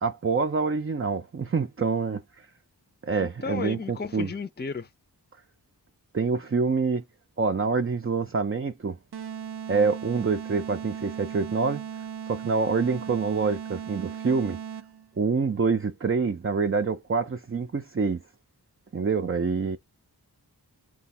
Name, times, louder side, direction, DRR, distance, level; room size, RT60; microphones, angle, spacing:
voice 1, 0.0-2.5 3.0-4.3 6.1-7.0 7.4-9.0 9.7-14.6 15.2-18.2 18.9-19.8, right 5 dB, 35° right, 0.5 m, -26 dB
voice 2, 3.2-4.9, left 5 dB, 25° left, 0.6 m, -34 dB
sound 1, 9.1-15.1, right 8 dB, 75° right, 0.6 m, -37 dB
3.4 x 2.3 x 4.2 m
wide cardioid pair, 55°, 40 cm